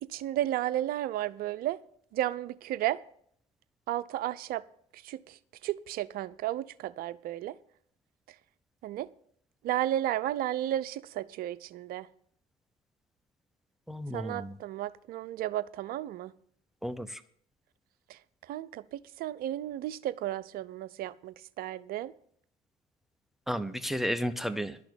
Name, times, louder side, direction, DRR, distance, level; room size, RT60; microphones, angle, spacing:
voice 1, 0.0-1.8 2.1-3.0 3.9-4.6 4.9-7.6 8.8-9.1 9.6-12.1 14.1-16.3 18.1-22.1, right 13 dB, 60° right, 0.7 m, -33 dB
voice 2, 13.9-14.5 16.8-17.2 23.5-24.8, equal, ahead, 0.8 m, -33 dB
12.0 x 6.0 x 8.6 m
hypercardioid pair, 60°, 18 cm